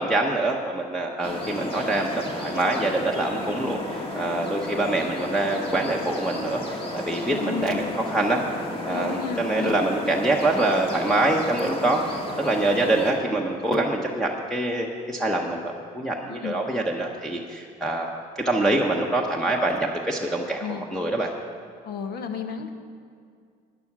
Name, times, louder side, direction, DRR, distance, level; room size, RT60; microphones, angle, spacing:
voice 1, 0.0-8.4 8.8-18.2 18.4-21.3, right 2 dB, 5° left, -3 dB, 0.9 m, -25 dB
sound 1, 1.2-13.1, left 1 dB, 35° left, 1.8 m, -32 dB
voice 2, 7.3-7.9 8.9-9.8 16.3-16.6 20.6-20.8 21.9-22.7, left 7 dB, 70° left, 7 dB, 1.2 m, -33 dB
12.0 x 9.8 x 6.0 m, 2.2 s
cardioid pair, 110°, 17 cm